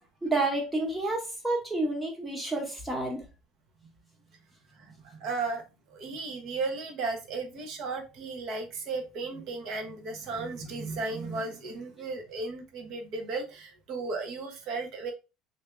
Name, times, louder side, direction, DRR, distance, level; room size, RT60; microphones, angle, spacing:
voice 1, 0.2-3.2, right 2 dB, 10° right, 1 dB, 1.0 m, -29 dB
voice 2, 4.7-5.6 5.9-15.1, right 3 dB, 50° right, 4 dB, 0.9 m, -35 dB
3.3 x 2.7 x 3.3 m, 0.29 s
cardioid pair, 160°, 0 cm